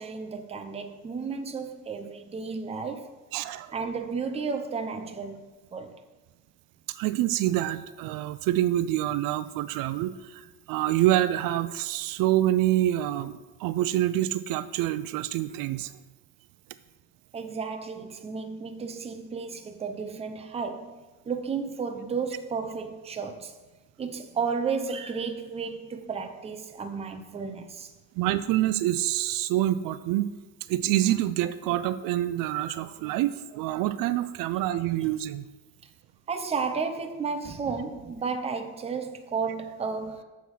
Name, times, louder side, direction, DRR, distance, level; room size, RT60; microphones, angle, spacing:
voice 1, 0.0-3.2 3.7-6.0 17.3-23.6 24.0-27.9 36.3-40.2, right 5 dB, 20° right, 0.6 m, -33 dB
voice 2, 3.3-3.7 6.9-15.9 28.2-30.3 30.7-35.5, right 14 dB, 85° right, 0.5 m, -26 dB
7.1 x 5.7 x 6.2 m
cardioid pair, 155°, 33 cm